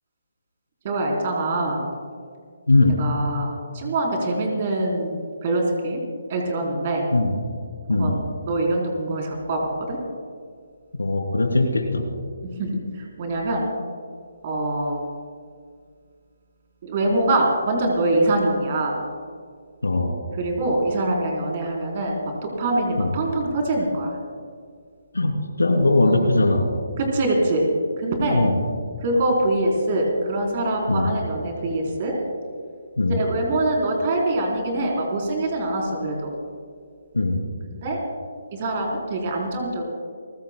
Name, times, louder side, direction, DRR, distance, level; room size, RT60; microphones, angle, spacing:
voice 1, 0.8-1.8 3.0-3.5 3.7-6.0 6.3-7.1 7.9-8.2 8.5-9.6 9.9-10.0 12.4-12.7 13.2-13.7 14.4-15.0 16.8-19.0 20.4-22.2 22.4-24.1 26.1-26.2 27.0-27.6 28.0-28.4 29.0-32.1 33.1-36.3 37.7-38.0 38.5-39.8, right 2 dB, 40° right, 0 dB, 3.9 m, -24 dB
voice 2, 2.7-3.0 7.1-7.4 7.9-8.2 11.0-12.0 19.8-20.2 23.0-23.1 25.1-26.6 28.3-28.6 30.9-31.1 33.0-33.2 37.1-37.4, left 2 dB, 85° left, 3 dB, 3.0 m, -20 dB
29.5 x 15.5 x 2.3 m, 2.1 s
figure-of-eight pair, 145°, 0 cm